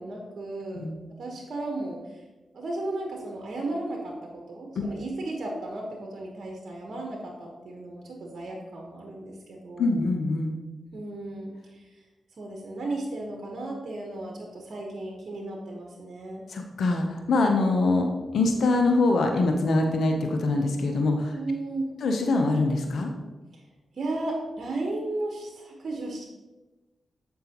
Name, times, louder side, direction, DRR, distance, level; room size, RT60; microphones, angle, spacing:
voice 1, 0.0-2.2 2.5-10.0 10.9-12.0 12.4-16.5 21.3-21.9 23.5-23.6 23.9-26.2, right 2 dB, 65° right, 0 dB, 1.2 m, -35 dB
voice 2, 9.8-10.6 16.5-18.1 18.3-21.4 22.0-23.1, left 2 dB, 75° left, 3 dB, 0.7 m, -24 dB
7.8 x 5.5 x 2.9 m, 1.1 s
supercardioid pair, 45°, 0 cm